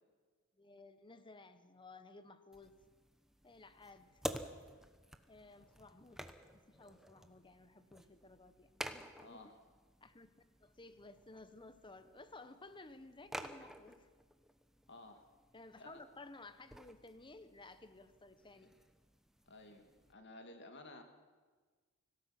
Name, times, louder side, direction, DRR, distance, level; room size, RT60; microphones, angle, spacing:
voice 1, 0.6-2.8 3.4-4.2 5.3-6.2 6.5-9.5 10.0-10.3 10.6-14.1 15.5-18.7, left 2 dB, 20° left, 11 dB, 1.1 m, -56 dB
sound 1, 2.5-20.1, equal, ahead, 1.0 m, -51 dB
voice 2, 9.2-9.5 14.9-15.2 15.8-16.0 19.5-21.0, left 2 dB, 55° left, 5 dB, 2.5 m, -54 dB
25.5 x 17.5 x 6.0 m, 1.4 s
head